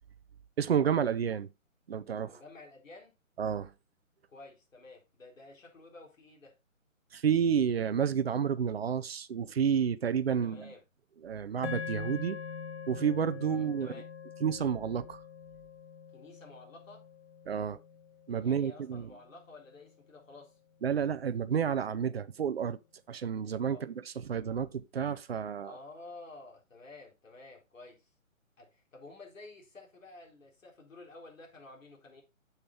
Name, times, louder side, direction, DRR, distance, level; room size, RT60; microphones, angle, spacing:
voice 1, 0.6-1.5 1.9-2.4 3.4-3.7 7.1-10.7 11.2-12.4 12.9-13.9 14.4-15.2 17.5-17.8 18.3-19.1 20.8-22.8 23.1-24.0 24.3-25.7, right 7 dB, 50° right, 0.7 m, -30 dB
voice 2, 2.3-3.2 4.3-6.6 10.4-10.8 13.4-14.1 16.1-17.0 18.4-20.5 23.7-23.8 25.6-28.1 28.6-32.2, left 2 dB, 70° left, 4.0 m, -51 dB
sound 1, 11.6-20.0, left 6 dB, 55° left, 1.2 m, -44 dB
7.3 x 6.7 x 3.9 m
hypercardioid pair, 160°, 40 cm